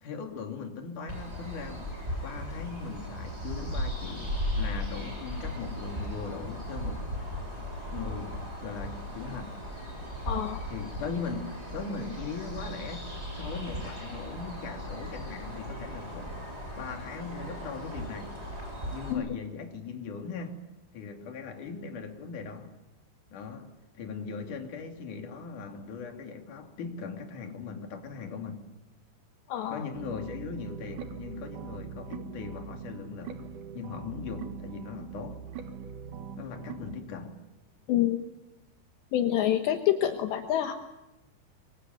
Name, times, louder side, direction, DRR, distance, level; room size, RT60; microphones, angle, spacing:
voice 1, 0.0-1.9 2.2-7.0 7.9-9.6 10.7-13.1 13.3-16.4 16.8-18.3 18.9-20.6 20.9-22.7 23.3-28.6 29.7-33.4 33.7-35.4 36.4-37.4, left 5 dB, 45° left, 3 dB, 4.0 m, -39 dB
sound 1, 1.1-19.1, equal, 15° right, 7.6 m, -37 dB
voice 2, 10.3-10.6 19.1-19.4 29.5-29.8 37.9-38.2 39.1-40.7, left 11 dB, 75° left, 5 dB, 3.3 m, -27 dB
sound 2, 29.9-37.0, right 6 dB, 55° right, 2.5 m, -42 dB
25.0 x 24.0 x 9.5 m, 0.98 s
omnidirectional pair, 5.2 m